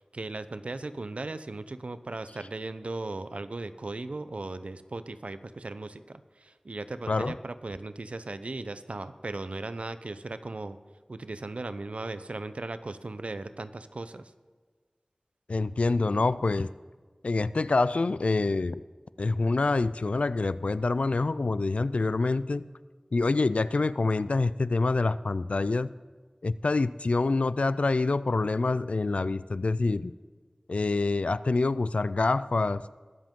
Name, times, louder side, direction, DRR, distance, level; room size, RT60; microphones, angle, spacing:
voice 1, 0.1-10.8 11.1-14.3, right 2 dB, 80° right, 12 dB, 0.6 m, -37 dB
voice 2, 15.5-16.7 17.2-18.8 19.2-22.7 23.1-25.9 26.4-30.1 30.7-32.8, left 3 dB, 85° left, 16 dB, 0.3 m, -26 dB
22.0 x 7.6 x 3.7 m, 1.5 s
wide cardioid pair, 50°, 2 cm